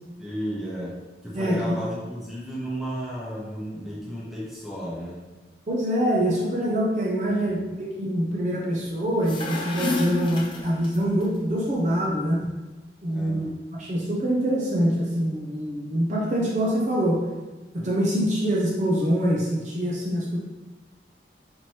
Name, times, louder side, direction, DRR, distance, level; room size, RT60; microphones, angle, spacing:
voice 1, 0.2-0.9 1.2-5.2 7.2-7.6 10.5-10.7 13.1-13.6, equal, ahead, -7 dB, 0.9 m, -34 dB
voice 2, 1.3-1.8 5.7-12.4 13.0-13.5 13.8-17.2 17.7-20.4, equal, 40° right, -4 dB, 0.6 m, -24 dB
sound 1, 9.1-11.2, left 3 dB, 30° left, 0.4 m, -30 dB
4.3 x 3.0 x 3.0 m, 1.2 s
head